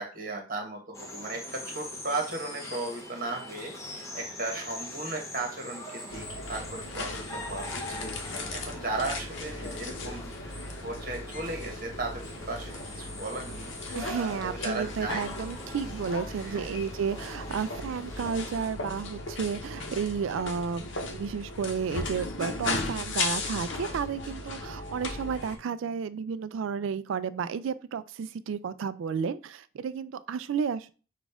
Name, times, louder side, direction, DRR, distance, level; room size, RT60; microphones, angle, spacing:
voice 1, 0.0-15.5 16.4-16.8, right 2 dB, 45° right, 2 dB, 1.3 m, -36 dB
sound 1, 0.9-18.7, left 1 dB, 15° left, 0.8 m, -43 dB
sound 2, 6.1-25.6, left 2 dB, 60° left, 0.8 m, -37 dB
voice 2, 13.9-30.9, right 6 dB, 65° right, 14 dB, 0.3 m, -32 dB
6.1 x 2.4 x 3.5 m, 0.35 s
head